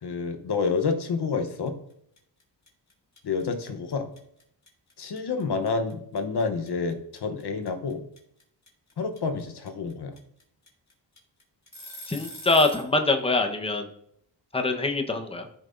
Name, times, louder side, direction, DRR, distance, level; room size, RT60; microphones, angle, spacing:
voice 1, 0.0-1.7 3.2-4.1 5.0-8.0 9.0-10.1, left 4 dB, 60° left, 7 dB, 1.0 m, -28 dB
sound 1, 1.7-1.9 2.2-12.9, equal, 35° left, 2.3 m, -44 dB
voice 2, 12.1-13.8 14.5-15.5, left 2 dB, 15° left, 4 dB, 1.0 m, -24 dB
13.5 x 5.5 x 2.6 m, 0.71 s
cardioid pair, 85°, 44 cm